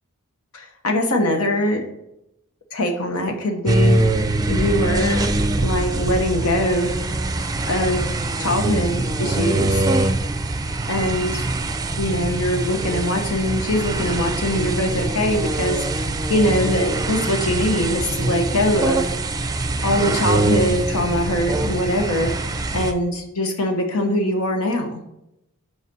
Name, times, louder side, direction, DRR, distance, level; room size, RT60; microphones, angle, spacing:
voice 1, 0.5-1.8 2.7-4.0 4.5-5.3 5.6-6.9 7.7-8.1 8.4-9.9 10.9-11.4 12.0-19.0 19.8-22.3 22.7-25.0, left 1 dB, 90° left, 3 dB, 1.0 m, -22 dB
sound 1, 3.7-22.9, right 2 dB, 20° right, 0.4 m, -23 dB
5.6 x 4.8 x 6.1 m, 0.85 s
head